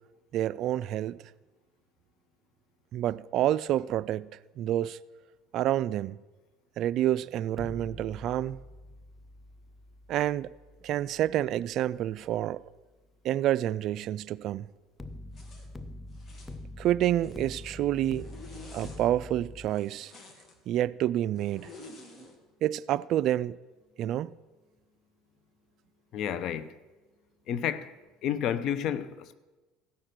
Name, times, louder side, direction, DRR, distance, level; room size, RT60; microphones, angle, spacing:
voice 1, 0.3-1.2 2.9-4.3 4.6-5.0 5.5-6.2 6.8-8.6 10.1-10.5 10.8-12.6 13.2-14.7 16.8-18.2 18.7-20.1 20.7-21.7 22.6-23.6 24.0-24.3, right 12 dB, 55° right, 0.3 m, -28 dB
sound 1, 7.5-12.6 15.0-19.7, left 1 dB, 10° left, 0.6 m, -45 dB
Zipper (clothing), 15.3-15.7 16.1-16.6 17.0-17.8 18.1-19.0 19.7-20.5 21.4-22.3, left 2 dB, 30° left, 2.1 m, -50 dB
voice 2, 26.1-26.7 27.5-27.9 28.2-29.3, left 9 dB, 55° left, 0.7 m, -30 dB
15.5 x 6.6 x 6.0 m
supercardioid pair, 110°, 0 cm